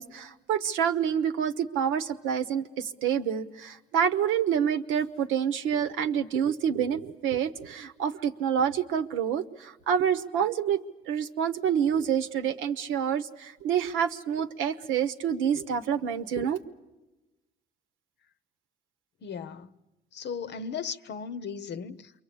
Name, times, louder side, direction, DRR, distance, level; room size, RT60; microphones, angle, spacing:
voice 1, 0.0-10.8 11.1-16.6, right 8 dB, 85° right, 1.0 m, -27 dB
voice 2, 19.2-19.7 20.1-22.1, left 6 dB, 60° left, 0.9 m, -36 dB
28.0 x 23.0 x 8.5 m
supercardioid pair, 65°, 20 cm